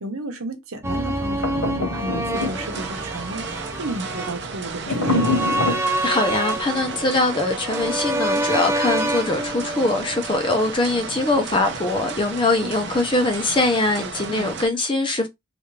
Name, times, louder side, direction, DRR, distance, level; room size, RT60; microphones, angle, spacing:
voice 1, 0.0-5.3 12.6-12.7 14.3-14.5, right 2 dB, 85° right, 1.0 m, -33 dB
sound 1, 0.8-11.0 11.3-11.4, right 1 dB, 10° right, 0.4 m, -28 dB
sound 2, 1.4-2.9 4.8-5.8, left 2 dB, 65° left, 1.5 m, -24 dB
sound 3, 2.3-14.7, right 4 dB, 55° right, 0.7 m, -34 dB
voice 2, 6.0-15.3, left 2 dB, 25° left, 0.7 m, -22 dB
3.3 x 2.6 x 3.2 m
head